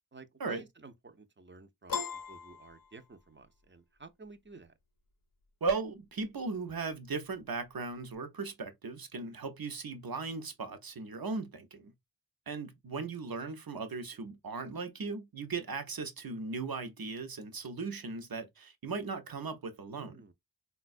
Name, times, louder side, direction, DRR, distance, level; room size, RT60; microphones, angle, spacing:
voice 1, 0.1-2.0 2.3-4.7 19.9-20.3, right 3 dB, 30° right, 0.5 m, -53 dB
Piano, 1.9-3.4, left 5 dB, 65° left, 0.5 m, -38 dB
voice 2, 5.6-11.9 12.5-20.2, right 4 dB, 70° right, 0.7 m, -37 dB
3.9 x 2.2 x 2.5 m
wide cardioid pair, 55°, 36 cm